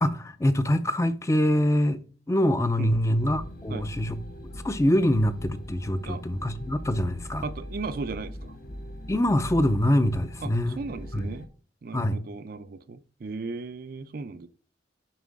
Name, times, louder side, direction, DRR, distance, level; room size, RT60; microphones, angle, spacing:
voice 1, 0.0-2.0 2.3-4.2 4.6-7.4 9.1-10.8 11.1-11.3 11.9-12.2, left 1 dB, 15° left, 0.5 m, -24 dB
sound 1, 3.2-11.5, equal, 50° left, 0.9 m, -41 dB
voice 2, 7.4-8.5 10.4-10.5 10.8-11.5 11.8-14.5, right 4 dB, 55° right, 0.4 m, -36 dB
7.5 x 5.3 x 3.6 m
head